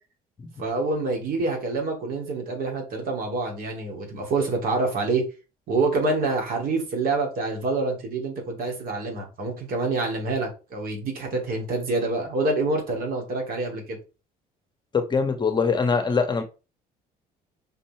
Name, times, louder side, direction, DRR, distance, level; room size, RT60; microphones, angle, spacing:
voice 1, 0.6-5.2 5.7-14.0, right 3 dB, 60° right, 2.9 m, -26 dB
voice 2, 14.9-16.4, left 5 dB, 25° left, 1.2 m, -23 dB
5.5 x 4.1 x 4.5 m
cardioid pair, 110°, 17 cm